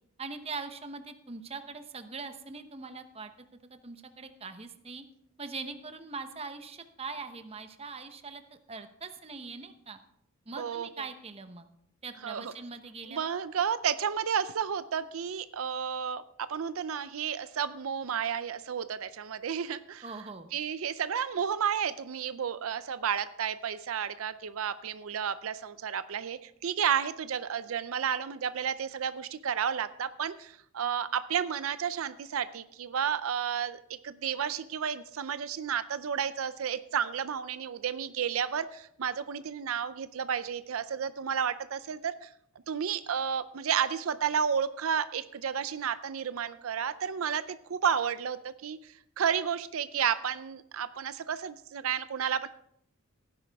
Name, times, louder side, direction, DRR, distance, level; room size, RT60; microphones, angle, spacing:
voice 1, 0.2-3.3 3.7-5.0 5.4-10.0 10.5-11.7 12.0-13.3 20.0-20.5, right 4 dB, 30° right, 8 dB, 0.9 m, -42 dB
voice 2, 10.6-10.9 12.2-12.5 13.1-16.2 16.5-20.0 20.5-42.3 42.7-52.5, right 7 dB, 80° right, 13 dB, 0.5 m, -32 dB
16.5 x 9.9 x 3.5 m, 0.73 s
head